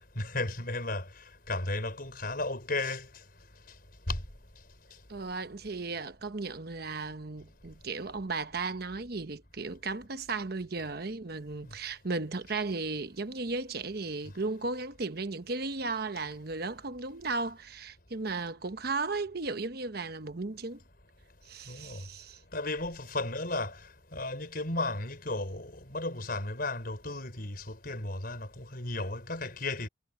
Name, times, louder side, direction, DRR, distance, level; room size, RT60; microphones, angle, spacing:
voice 1, 0.2-1.1 1.5-3.1 4.1-4.2 21.7-22.0 22.5-23.8 24.1-29.9, left 2 dB, 50° left, 6.0 m, -34 dB
voice 2, 5.1-20.8 21.5-22.4, right 3 dB, 55° right, 1.1 m, -35 dB
head